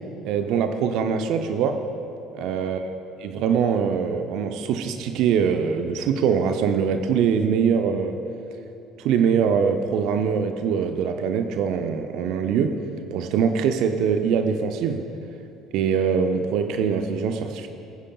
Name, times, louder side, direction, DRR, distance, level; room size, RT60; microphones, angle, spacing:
voice 1, 0.2-1.8 2.3-2.9 3.2-8.2 9.0-12.8 13.1-15.1 15.7-17.7, right 6 dB, 60° right, 7 dB, 0.6 m, -23 dB
20.0 x 9.8 x 2.3 m, 2.7 s
figure-of-eight pair, 60°, 0 cm